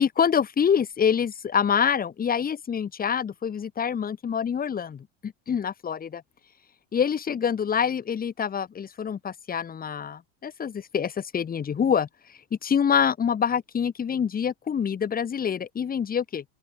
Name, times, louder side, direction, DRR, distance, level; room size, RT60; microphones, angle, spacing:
voice 1, 0.0-6.2 6.9-16.4, left 7 dB, 25° left, 6.0 m, -26 dB
open air
cardioid pair, 135°, 33 cm